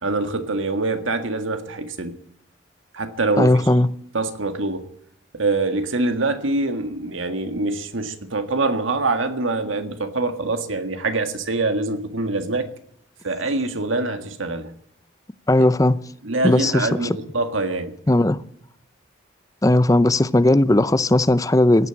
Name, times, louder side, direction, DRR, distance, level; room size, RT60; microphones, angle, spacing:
voice 1, 0.0-2.2 2.9-3.5 4.1-4.9 5.3-12.7 13.2-14.7 16.2-18.0, right 3 dB, 75° right, 1.7 m, -24 dB
voice 2, 3.4-3.9 15.5-16.0 16.4-16.9 18.1-18.4 19.6-21.9, left 1 dB, 15° left, 0.5 m, -17 dB
17.0 x 9.4 x 8.8 m
head